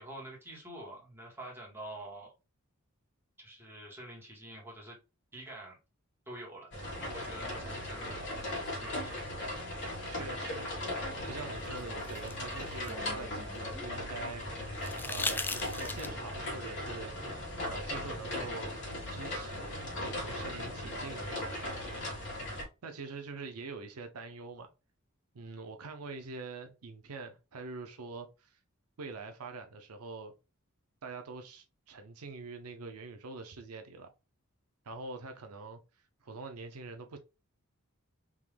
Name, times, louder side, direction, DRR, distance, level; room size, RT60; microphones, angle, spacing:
voice 1, 0.0-2.3 3.4-5.0 5.3-5.8 6.2-6.7 7.0-8.5 8.8-9.2, right 1 dB, 10° right, 1.7 m, -46 dB
sound 1, 6.7-22.6, left 1 dB, 55° left, 1.8 m, -38 dB
voice 2, 10.1-10.7 11.2-14.4 15.0-17.1 17.7-18.7 19.1-22.1 22.8-24.7 25.3-28.6 29.0-30.3 31.0-34.1 34.8-37.2, right 3 dB, 90° right, 0.7 m, -44 dB
sound 2, 11.6-13.9 14.8-16.3 18.0-18.1, left 3 dB, 10° left, 0.3 m, -38 dB
3.7 x 2.9 x 3.3 m
head